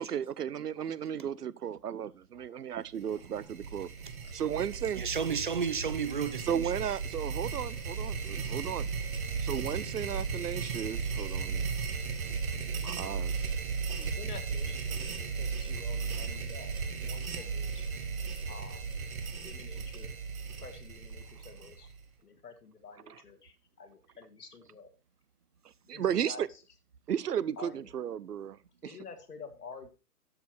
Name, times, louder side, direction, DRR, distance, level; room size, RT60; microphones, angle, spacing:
voice 1, 0.0-3.9 4.3-5.0 6.5-8.9 9.4-11.7 12.8-13.3 23.1-23.2 25.9-26.5 27.1-29.0, right 9 dB, 90° right, 0.7 m, -34 dB
sound 1, 3.0-22.0, right 5 dB, 65° right, 2.1 m, -36 dB
voice 2, 5.0-6.7 12.3-12.4, right 6 dB, 35° right, 0.4 m, -33 dB
voice 3, 13.9-16.7 17.0-17.8 18.5-18.9 19.3-20.2 20.6-21.9 22.2-24.9 25.9-26.4 27.6-27.9 28.8-29.9, left 5 dB, 85° left, 2.1 m, -49 dB
12.5 x 4.8 x 4.5 m
hypercardioid pair, 140°, 45 cm